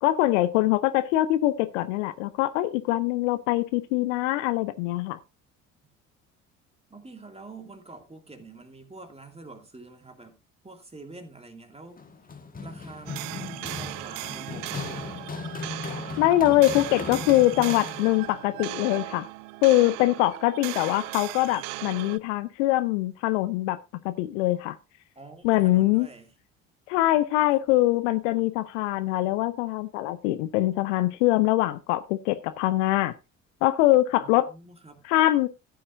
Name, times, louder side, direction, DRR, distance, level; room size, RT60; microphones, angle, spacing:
voice 1, 0.0-5.2 16.2-19.3 19.6-23.8 24.0-24.8 25.4-26.1 26.9-33.1 33.6-34.5 35.1-35.5, left 16 dB, 65° left, 0.8 m, -23 dB
voice 2, 6.9-10.4 10.6-12.1 12.6-15.1 16.7-17.0 25.2-26.3 34.1-35.0, right 3 dB, 15° right, 2.4 m, -46 dB
Run, 12.0-18.3, left 4 dB, 20° left, 1.5 m, -37 dB
sound 1, 13.1-22.2, right 21 dB, 55° right, 0.5 m, -37 dB
15.0 x 8.7 x 2.6 m
figure-of-eight pair, 50°, 39 cm